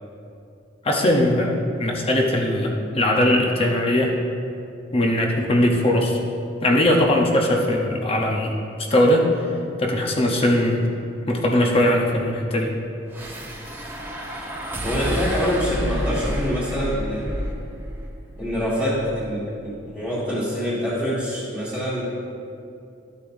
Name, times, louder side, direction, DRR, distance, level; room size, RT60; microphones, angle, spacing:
voice 1, 0.8-4.1 4.9-6.2 6.6-8.5 8.9-9.3 9.8-10.8 11.3-12.7, left 1 dB, 30° left, 0 dB, 0.8 m, -20 dB
sound 1, 13.1-19.5, equal, 10° right, 0.9 m, -30 dB
voice 2, 14.8-17.5 18.4-22.0, equal, 15° left, -11 dB, 1.6 m, -25 dB
12.5 x 8.3 x 2.6 m, 2.6 s
head